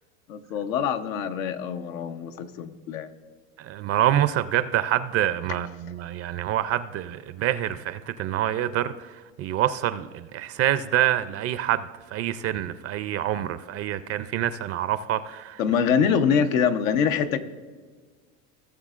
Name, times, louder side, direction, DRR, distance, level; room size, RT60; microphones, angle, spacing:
voice 1, 0.3-3.1 15.6-17.4, left 7 dB, 90° left, 8 dB, 0.9 m, -24 dB
voice 2, 3.6-15.6, right 12 dB, 40° right, 13 dB, 0.4 m, -26 dB
17.5 x 7.0 x 2.4 m, 1.5 s
supercardioid pair, 115°, 40 cm